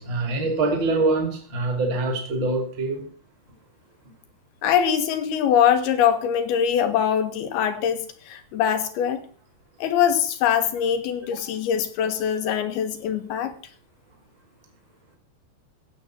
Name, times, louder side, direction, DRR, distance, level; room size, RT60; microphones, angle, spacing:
voice 1, 0.0-3.0, right 3 dB, 30° right, 3 dB, 3.2 m, -24 dB
voice 2, 4.6-9.2 9.8-13.5, left 8 dB, 70° left, 9 dB, 3.1 m, -23 dB
16.5 x 8.3 x 5.9 m, 0.40 s
omnidirectional pair, 5.0 m